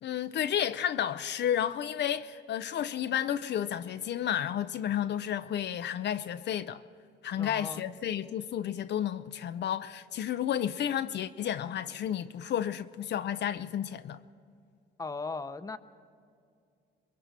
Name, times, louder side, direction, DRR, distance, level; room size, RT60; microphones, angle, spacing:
voice 1, 0.0-6.8 7.2-14.2, left 10 dB, 60° left, 0.5 m, -32 dB
voice 2, 7.4-7.8 15.0-15.8, left 4 dB, 15° left, 0.8 m, -37 dB
27.5 x 22.0 x 4.2 m
cardioid pair, 90°, 20 cm